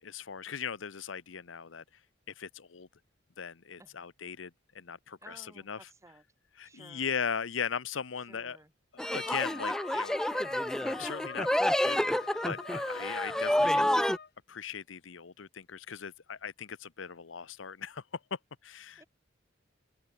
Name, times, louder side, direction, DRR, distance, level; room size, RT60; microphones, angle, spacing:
voice 1, 0.0-1.8 2.3-2.9 3.4-5.9 6.6-8.6 8.9-10.5 10.9-12.0 12.4-14.0 14.5-18.0 18.3-19.0, left 7 dB, 85° left, 0.8 m, -39 dB
voice 2, 5.2-6.2 6.6-7.1 8.3-8.7 19.0-19.1, right 2 dB, 15° right, 1.6 m, -56 dB
sound 1, 9.0-14.2, left 1 dB, 5° left, 0.4 m, -29 dB
Wind instrument woodwind instrument, 9.2-14.3, left 6 dB, 55° left, 2.0 m, -45 dB
open air
head